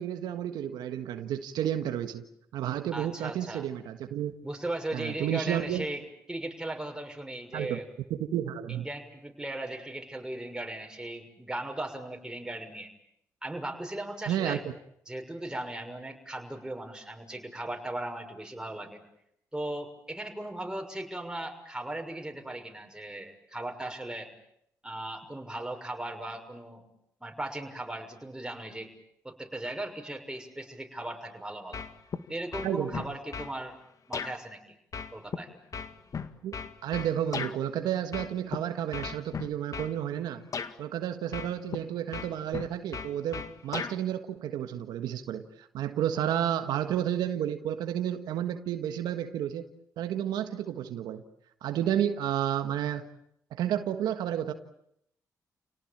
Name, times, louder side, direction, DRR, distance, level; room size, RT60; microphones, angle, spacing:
voice 1, 0.0-2.3 2.5-4.3 4.9-5.9 7.5-7.8 8.1-8.8 14.3-14.6 32.6-33.0 36.4-36.5 36.8-40.4 40.8-49.7 50.0-51.2 51.6-53.1 53.5-54.5, right 10 dB, 85° right, 8 dB, 1.6 m, -31 dB
voice 2, 2.9-3.7 4.4-6.0 6.3-7.9 8.7-12.9 13.4-14.6 15.1-19.0 19.5-24.3 24.8-26.9 27.2-28.9 29.2-31.8 32.3-33.7 34.1-34.8 35.1-35.5, right 1 dB, 10° right, 4 dB, 6.4 m, -37 dB
sound 1, 31.7-32.2 32.5-33.5 34.1-34.3 34.9-37.6 38.1-38.6 38.9-39.9 40.5-40.7 41.3-41.8 42.1-44.0, left 6 dB, 55° left, 2.0 m, -36 dB
30.0 x 18.5 x 8.9 m, 0.75 s
cardioid pair, 65°, 7 cm